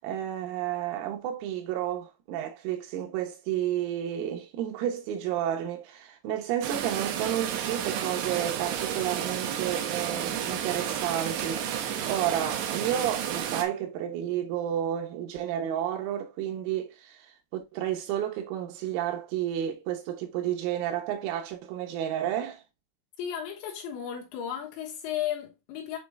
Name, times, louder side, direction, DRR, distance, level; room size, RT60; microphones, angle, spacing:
voice 1, 0.0-17.2 17.5-22.6, right 11 dB, 90° right, 3.8 m, -31 dB
sound 1, 6.6-13.6, right 9 dB, 75° right, 2.7 m, -31 dB
voice 2, 23.2-26.0, left 9 dB, 70° left, 3.4 m, -34 dB
8.6 x 3.1 x 3.5 m
omnidirectional pair, 5.8 m